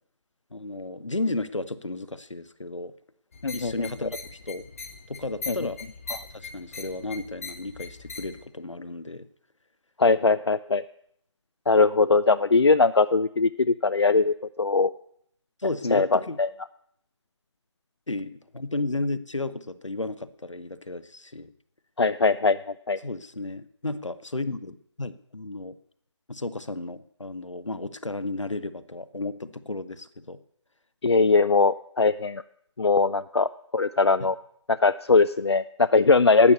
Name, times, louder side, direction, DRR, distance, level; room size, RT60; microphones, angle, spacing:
voice 1, 0.5-2.9 3.5-4.6 5.1-5.8 6.1-9.3 15.6-16.4 18.1-21.5 23.0-25.8 26.3-30.4 34.2-34.3, left 2 dB, 75° left, 14 dB, 0.9 m, -33 dB
sound 1, 3.3-8.5, left 4 dB, 30° left, 0.9 m, -41 dB
voice 2, 10.0-10.8 11.7-14.9 15.9-16.5 22.0-22.6 22.9-23.0 31.0-32.4 32.8-33.5 33.7-34.4 34.7-36.5, left 4 dB, 60° left, 13 dB, 0.4 m, -20 dB
12.5 x 8.4 x 8.1 m, 0.70 s
figure-of-eight pair, 155°, 16 cm